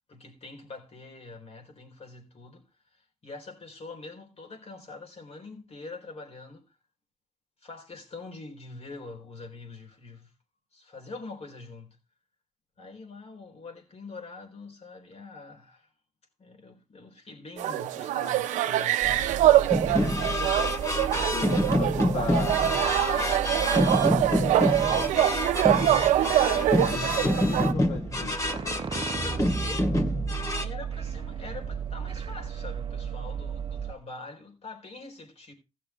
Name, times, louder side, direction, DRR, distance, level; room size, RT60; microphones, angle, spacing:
voice 1, 0.1-6.8 7.6-10.3 10.7-12.0 12.8-15.9 16.4-19.3 29.1-29.9 30.6-35.5, left 3 dB, 55° left, 4.1 m, -44 dB
sound 1, 17.6-27.7, right 13 dB, 90° right, 0.6 m, -24 dB
sound 2, 19.0-33.9, right 6 dB, 45° right, 0.8 m, -35 dB
sound 3, 19.7-30.6, left 1 dB, 25° left, 2.4 m, -27 dB
voice 2, 21.1-22.7 23.1-25.5 26.0-29.1 29.3-30.0, left 6 dB, 75° left, 1.2 m, -40 dB
16.0 x 6.7 x 3.5 m
supercardioid pair, 45°, 12 cm